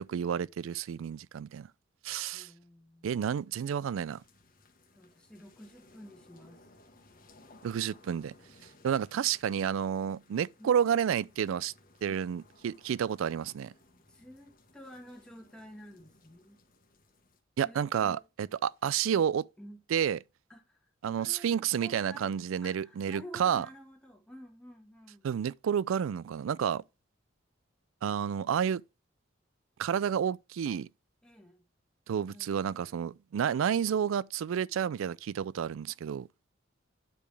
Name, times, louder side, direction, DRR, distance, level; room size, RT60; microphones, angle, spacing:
voice 1, 0.0-1.7 2.0-2.5 3.0-4.2 7.6-8.3 8.8-11.7 12.0-13.7 17.6-19.5 19.9-20.2 21.0-23.7 25.2-26.8 28.0-28.8 29.8-30.9 32.1-36.3, right 8 dB, 85° right, 0.3 m, -30 dB
voice 2, 2.3-3.2 4.9-6.6 10.6-11.0 12.0-12.2 14.1-16.6 17.6-18.5 19.6-19.8 20.5-20.9 21.1-22.3 22.6-25.2 31.2-31.6 32.3-32.6, equal, 5° left, 1.5 m, -51 dB
sound 1, 4.0-17.4, left 2 dB, 45° left, 1.2 m, -61 dB
9.0 x 5.0 x 3.3 m
head